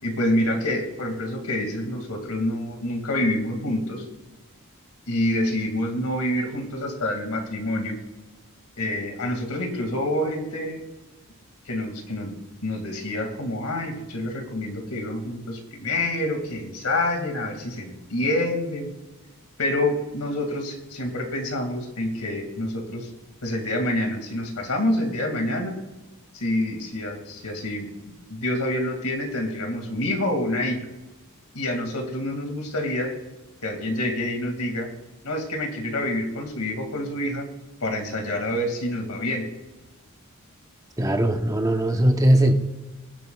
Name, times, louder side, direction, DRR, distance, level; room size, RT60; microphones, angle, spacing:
voice 1, 0.0-4.0 5.1-8.0 8.8-10.8 11.7-12.3 12.6-18.9 19.6-23.1 23.4-25.8 26.3-27.9 28.3-30.8 31.5-33.1 33.6-34.9 35.2-37.5 37.8-39.4, left 1 dB, 85° left, 2.2 m, -27 dB
voice 2, 41.0-42.5, right 1 dB, 15° right, 0.8 m, -19 dB
22.5 x 7.7 x 2.4 m
head